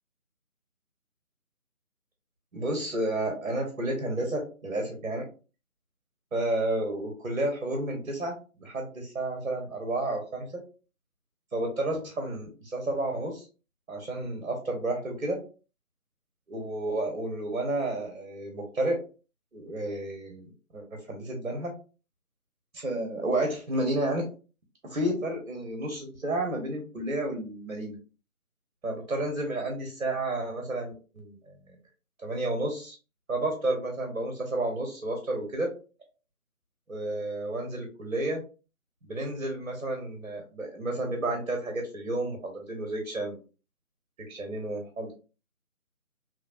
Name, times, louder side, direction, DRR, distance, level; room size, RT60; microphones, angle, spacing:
voice 1, 2.5-5.2 6.3-10.6 11.5-13.5 13.9-15.4 16.5-19.0 19.5-20.5 20.7-21.7 22.7-24.2 24.8-28.0 28.8-31.6 32.2-33.0 33.3-35.7 36.9-38.4 39.0-43.4 44.3-45.1, right 1 dB, 55° right, 2 dB, 0.9 m, -31 dB
3.0 x 2.5 x 2.4 m, 0.35 s
figure-of-eight pair, 160°, 44 cm